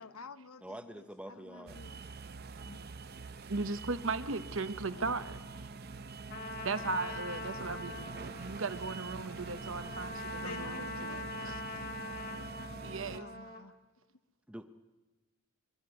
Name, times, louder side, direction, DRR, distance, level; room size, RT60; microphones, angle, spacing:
voice 1, 0.0-2.0 2.7-2.8 10.4-11.3 13.1-13.7, left 4 dB, 75° left, 12 dB, 1.0 m, -49 dB
voice 2, 0.6-1.8 14.5-14.6, equal, 5° right, 8 dB, 0.8 m, -46 dB
sound 1, 1.7-13.2, right 4 dB, 45° right, 0.7 m, -45 dB
voice 3, 3.5-5.7 6.6-8.0 8.4-11.6 12.8-13.3, right 3 dB, 60° right, 11 dB, 1.1 m, -37 dB
Trumpet, 6.3-13.6, left 2 dB, 40° left, 2.2 m, -43 dB
24.5 x 12.5 x 10.0 m, 1.2 s
head